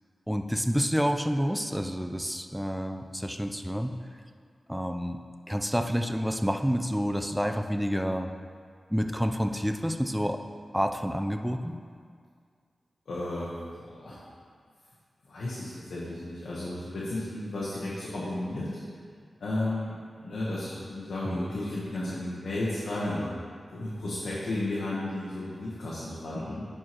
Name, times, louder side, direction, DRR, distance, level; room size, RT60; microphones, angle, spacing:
voice 1, 0.3-3.9 4.7-5.2 5.5-8.3 8.9-10.4 10.7-11.8 21.2-21.5, equal, 5° right, 5 dB, 0.5 m, -29 dB
voice 2, 13.1-14.2 15.2-18.8 19.4-19.9 20.2-23.3 23.7-26.6, left 1 dB, 85° left, -8 dB, 1.1 m, -33 dB
10.5 x 4.6 x 3.0 m, 2.1 s
cardioid pair, 50°, 0 cm